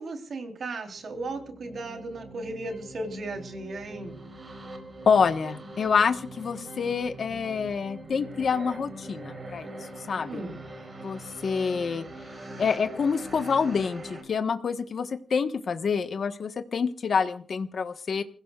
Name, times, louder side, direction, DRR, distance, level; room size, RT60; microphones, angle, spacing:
voice 1, 0.0-4.2 10.3-10.5, right 2 dB, 55° right, 3 dB, 3.8 m, -36 dB
sound 1, 0.9-14.2, right 1 dB, 30° right, 4.2 m, -43 dB
voice 2, 5.0-9.7 10.1-10.4 11.0-12.1 12.6-18.2, left 5 dB, 50° left, 8 dB, 1.3 m, -27 dB
29.0 x 16.0 x 2.5 m, 0.41 s
wide cardioid pair, 165°, 0 cm